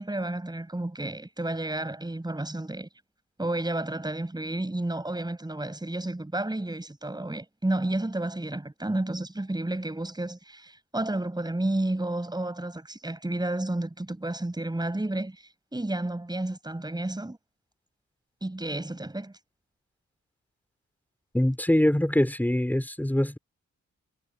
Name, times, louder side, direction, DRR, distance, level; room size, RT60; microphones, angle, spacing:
voice 1, 0.0-2.9 3.4-17.4 18.4-19.3, right 1 dB, 15° right, 7.3 m, -31 dB
voice 2, 21.3-23.4, left 1 dB, 5° left, 3.7 m, -23 dB
cardioid pair, 95°, 30 cm